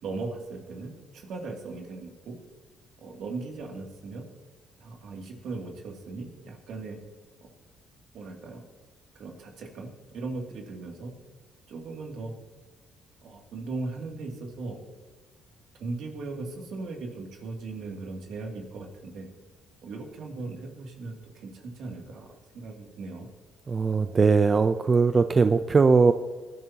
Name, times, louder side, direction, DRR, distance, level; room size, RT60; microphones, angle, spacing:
voice 1, 0.0-2.4 3.0-4.3 4.8-7.0 8.1-8.6 9.1-11.1 11.7-12.3 13.2-14.8 15.8-19.3 19.8-23.3, right 3 dB, 75° right, 1 dB, 2.6 m, -38 dB
voice 2, 23.7-26.1, right 4 dB, 35° right, 9 dB, 0.5 m, -20 dB
20.0 x 11.0 x 2.9 m, 1.4 s
cardioid pair, 95°, 0 cm